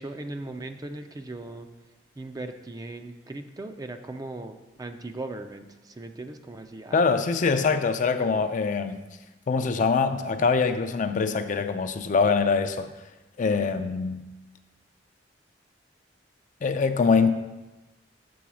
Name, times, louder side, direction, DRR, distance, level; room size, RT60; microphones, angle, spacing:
voice 1, 0.0-1.7 2.2-7.2 8.0-8.5, right 2 dB, 20° right, 7 dB, 0.4 m, -38 dB
voice 2, 6.9-9.0 9.5-12.9 13.4-14.2 16.6-17.3, left 5 dB, 45° left, 9 dB, 0.4 m, -23 dB
6.9 x 4.0 x 6.1 m, 1.1 s
head